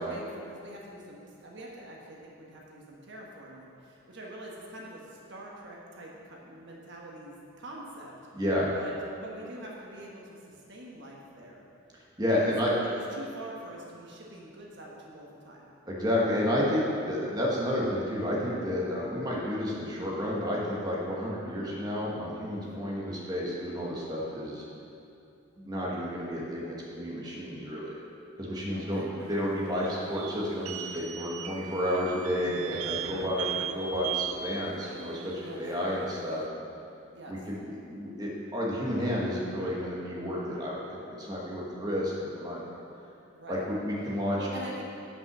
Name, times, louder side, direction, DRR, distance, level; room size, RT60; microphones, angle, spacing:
voice 1, 0.0-8.2 8.8-11.6 12.4-12.5 12.8-15.7 28.7-29.1 35.4-35.6 37.1-37.3 43.3-43.7 44.1-44.9, right 1 dB, 55° right, -3 dB, 1.2 m, -45 dB
voice 2, 8.3-8.7 12.2-12.7 15.9-24.6 25.6-28.0 28.4-33.5 33.7-36.4 37.3-42.7 43.5-44.4, equal, 20° right, -5 dB, 1.3 m, -31 dB
sound 1, 29.2-36.5, right 8 dB, 85° right, 0.4 m, -38 dB
8.9 x 5.7 x 6.0 m, 2.6 s
head